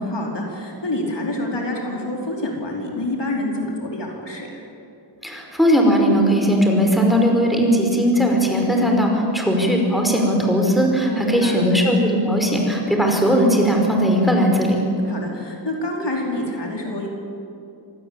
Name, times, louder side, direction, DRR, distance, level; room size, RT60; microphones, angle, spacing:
voice 1, 0.0-4.6 11.0-11.7 15.1-17.1, left 1 dB, 70° left, -1 dB, 4.8 m, -27 dB
voice 2, 5.2-14.8, equal, ahead, 1 dB, 5.0 m, -18 dB
26.0 x 19.0 x 8.9 m, 2.6 s
wide cardioid pair, 75°, 43 cm